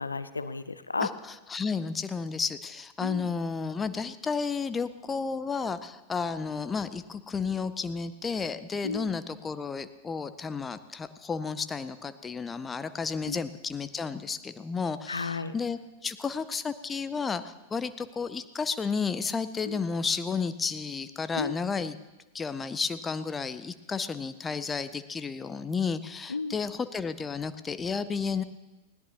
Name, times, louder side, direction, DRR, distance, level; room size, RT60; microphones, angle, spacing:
voice 1, 0.0-1.1 3.0-3.3 8.8-9.2 13.3-13.4 15.1-15.5 19.6-19.8 21.4-21.6 26.3-26.6, left 4 dB, 80° left, 13 dB, 0.5 m, -33 dB
voice 2, 1.0-22.0 22.3-28.4, left 5 dB, 15° left, 12 dB, 0.6 m, -32 dB
20.0 x 17.0 x 2.9 m, 1.1 s
figure-of-eight pair, 90°, 0 cm